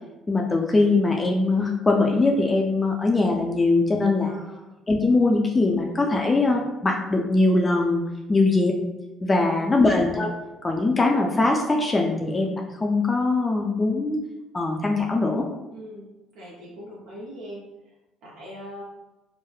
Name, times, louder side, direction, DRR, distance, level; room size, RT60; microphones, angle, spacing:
voice 1, 0.3-4.3 4.9-8.0 8.3-8.7 9.2-10.3 10.6-14.2 14.5-15.5, left 3 dB, 25° left, 1 dB, 0.3 m, -21 dB
voice 2, 4.2-4.7 9.5-10.0 15.7-16.1 16.3-17.9 18.2-18.8, equal, 75° right, -4 dB, 0.5 m, -41 dB
3.0 x 2.1 x 2.3 m, 1.0 s
supercardioid pair, 75°, 0 cm